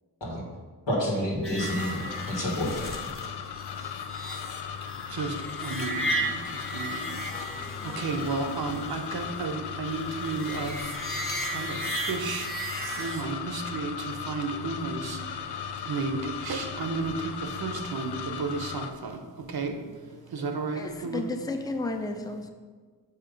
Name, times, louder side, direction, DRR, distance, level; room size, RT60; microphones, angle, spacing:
voice 1, 0.9-2.8, equal, 90° left, -3 dB, 1.7 m, -29 dB
sound 1, 1.4-13.2, right 1 dB, 30° left, 1.1 m, -36 dB
sound 2, 1.6-18.9, left 8 dB, 70° left, 0.5 m, -37 dB
voice 2, 5.6-6.0 6.3-6.4 6.7-7.0 8.0-10.7 11.4-11.8 12.1-12.5 13.0-13.9 14.3-15.2 15.9-17.1 17.6-19.2 19.5-19.7 20.3-21.3, right 4 dB, 60° right, 5 dB, 0.8 m, -32 dB
voice 3, 20.8-22.5, left 2 dB, 10° left, 5 dB, 0.5 m, -32 dB
6.6 x 2.9 x 5.1 m, 1.5 s
cardioid pair, 55°, 42 cm